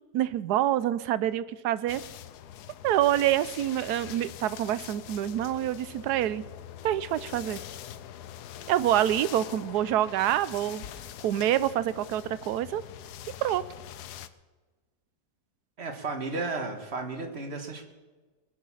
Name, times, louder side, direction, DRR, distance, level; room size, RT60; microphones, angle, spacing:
voice 1, 0.1-2.0 2.8-6.4 6.8-7.6 8.7-10.8 11.2-12.8 13.4-13.6, right 12 dB, 80° right, 17 dB, 1.2 m, -26 dB
sound 1, 1.9-14.3, left 11 dB, 80° left, 1.2 m, -44 dB
voice 2, 15.8-17.9, right 3 dB, 40° right, 5 dB, 1.7 m, -33 dB
21.0 x 7.3 x 7.2 m, 1.3 s
omnidirectional pair, 1.7 m